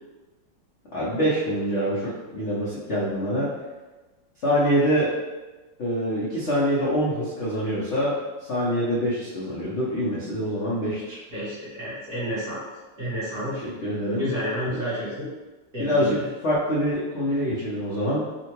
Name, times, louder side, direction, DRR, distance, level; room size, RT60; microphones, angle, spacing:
voice 1, 0.9-3.5 4.4-5.1 5.8-8.2 8.5-11.2 13.6-14.3 14.7-14.8 15.8-16.2 16.4-18.2, equal, 75° left, -9 dB, 0.6 m, -25 dB
voice 2, 11.3-12.6 13.0-13.6 14.1-15.3 15.7-16.2, equal, 45° right, -10 dB, 1.2 m, -30 dB
3.7 x 2.1 x 2.9 m, 1.2 s
omnidirectional pair, 2.1 m